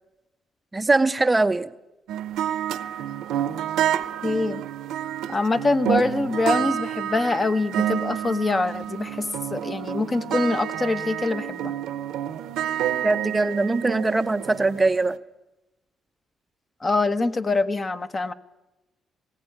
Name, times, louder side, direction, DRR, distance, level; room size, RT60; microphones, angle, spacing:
voice 1, 0.7-1.7 13.0-15.2, right 3 dB, 20° right, 10 dB, 0.7 m, -21 dB
sound 1, 2.1-15.1, right 11 dB, 85° right, 0.9 m, -29 dB
voice 2, 4.2-4.6 5.3-11.7 16.8-18.3, left 3 dB, 30° left, 9 dB, 1.2 m, -24 dB
20.5 x 16.5 x 9.5 m, 1.0 s
cardioid pair, 90°, 0 cm